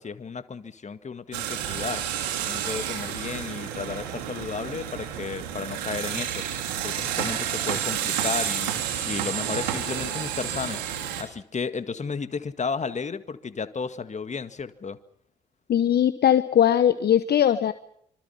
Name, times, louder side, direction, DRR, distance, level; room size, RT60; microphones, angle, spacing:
voice 1, 0.0-2.0 2.4-6.5 6.8-8.7 9.0-10.8 11.2-15.0, left 5 dB, 35° left, 11 dB, 1.9 m, -33 dB
sound 1, 1.3-11.2, right 10 dB, 75° right, 3.2 m, -30 dB
voice 2, 15.7-17.7, left 10 dB, 50° left, 13 dB, 1.0 m, -20 dB
26.0 x 25.5 x 5.8 m, 0.67 s
hypercardioid pair, 45°, 21 cm